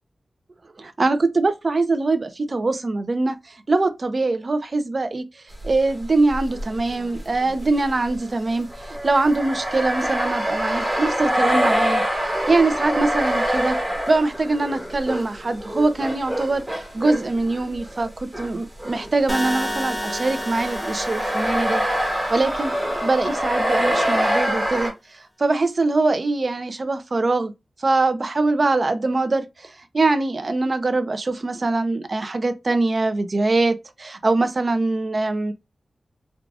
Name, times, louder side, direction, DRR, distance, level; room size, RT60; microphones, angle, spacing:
voice 1, 0.8-12.0 12.5-13.8 14.1-21.8 22.3-22.7 23.0-27.5 27.8-35.5, right 3 dB, 40° right, 0.6 m, -23 dB
sound 1, 5.6-5.9 6.3-18.5 18.8-24.9, equal, 10° right, 1.3 m, -25 dB
sound 2, 19.3-23.3, equal, 5° left, 0.9 m, -31 dB
4.7 x 2.4 x 2.4 m
wide cardioid pair, 120°, 0 cm